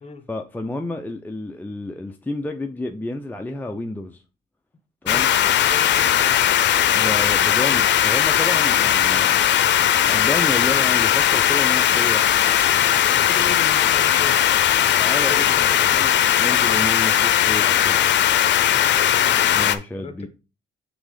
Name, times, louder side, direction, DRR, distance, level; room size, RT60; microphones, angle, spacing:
voice 1, 0.3-4.2 5.0-5.3 6.9-9.5 10.0-12.3 15.0-16.1 16.4-18.1 19.5-20.3, left 2 dB, 10° left, 0.6 m, -30 dB
sound 1, 5.1-19.8, left 10 dB, 65° left, 0.6 m, -18 dB
voice 2, 5.1-6.5 13.0-14.5 15.1-16.6 18.6-19.7 20.0-20.3, left 4 dB, 30° left, 1.2 m, -37 dB
6.0 x 3.7 x 5.0 m
cardioid pair, 90°, 20 cm